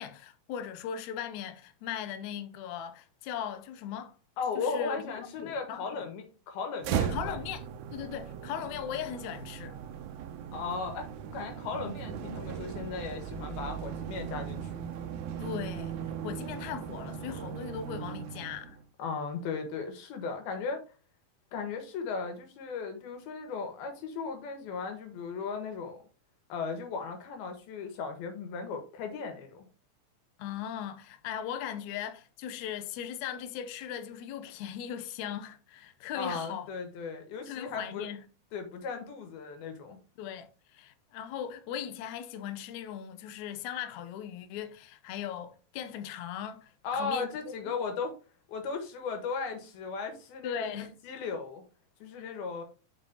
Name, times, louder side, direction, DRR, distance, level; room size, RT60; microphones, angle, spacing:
voice 1, 0.0-4.1 4.6-5.0 5.4-6.0 7.1-9.8 15.4-18.8 30.4-36.7 37.5-38.2 40.2-47.3 50.4-50.9 52.2-52.3, left 9 dB, 75° left, 1.8 m, -38 dB
voice 2, 4.4-7.4 10.5-14.9 19.0-20.8 21.5-26.0 26.5-29.7 36.2-38.1 38.5-40.0 46.8-48.2 48.5-51.6 52.0-52.6, left 5 dB, 90° left, 3.5 m, -36 dB
sound 1, 6.8-18.8, right 8 dB, 75° right, 1.7 m, -38 dB
7.3 x 6.2 x 2.9 m
omnidirectional pair, 4.2 m